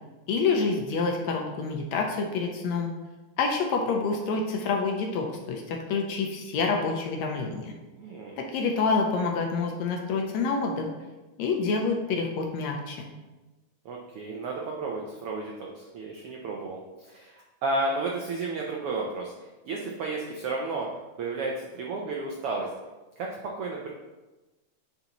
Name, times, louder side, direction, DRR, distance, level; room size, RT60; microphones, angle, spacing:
voice 1, 0.3-2.9 3.4-7.7 8.4-10.9 11.4-13.1, left 4 dB, 70° left, 1 dB, 1.9 m, -27 dB
voice 2, 8.0-8.4 13.8-19.3 19.6-20.9 21.2-22.7 23.2-23.9, right 3 dB, 80° right, -1 dB, 1.3 m, -32 dB
9.5 x 5.5 x 3.0 m, 1.1 s
omnidirectional pair, 3.6 m